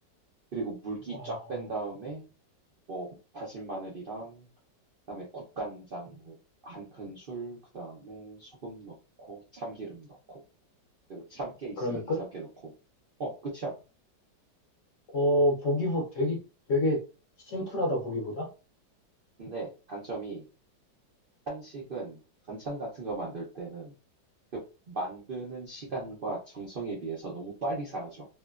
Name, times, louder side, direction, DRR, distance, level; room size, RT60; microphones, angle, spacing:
voice 1, 0.5-2.2 2.9-3.1 3.3-4.5 5.1-6.3 6.6-10.4 11.1-12.1 12.3-12.7 13.2-13.7 17.6-17.7 19.4-20.5 21.5-22.2 22.5-23.9 24.5-24.6 24.9-28.3, right 2 dB, 75° right, -4 dB, 0.5 m, -38 dB
voice 2, 11.8-12.2 15.1-16.4 16.7-17.0 17.5-18.5, left 1 dB, 60° left, -1 dB, 0.9 m, -27 dB
3.0 x 2.2 x 2.3 m, 0.32 s
omnidirectional pair, 1.9 m